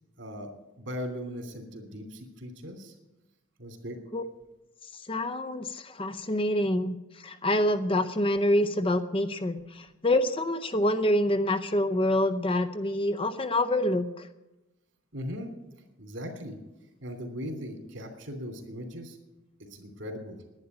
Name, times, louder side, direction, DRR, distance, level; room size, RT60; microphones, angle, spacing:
voice 1, 0.2-0.5 0.8-2.9 3.6-4.0 15.1-15.5 16.0-16.6 17.0-19.2 19.6-20.4, equal, 65° right, 4 dB, 2.9 m, -38 dB
voice 2, 5.1-14.3, left 1 dB, 25° left, 9 dB, 0.7 m, -26 dB
11.0 x 10.0 x 9.8 m, 0.99 s
head